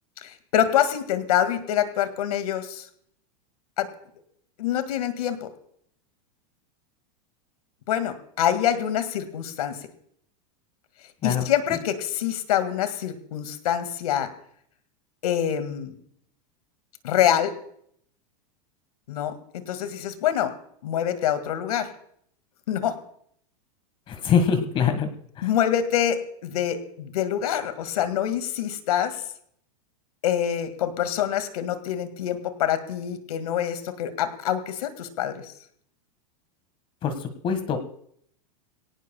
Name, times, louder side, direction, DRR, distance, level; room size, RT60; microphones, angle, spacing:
voice 1, 0.2-2.9 3.8-3.9 4.6-5.5 7.9-9.8 11.2-14.3 15.2-15.9 17.0-17.5 19.1-19.4 19.7-20.5 20.8-21.9 22.7-23.0 25.4-29.2 30.2-35.5, left 10 dB, 85° left, 10 dB, 2.1 m, -25 dB
voice 2, 24.1-25.1 25.4-25.5 37.0-37.8, left 7 dB, 30° left, 9 dB, 1.7 m, -24 dB
23.0 x 17.5 x 2.3 m, 0.65 s
supercardioid pair, 150°, 19 cm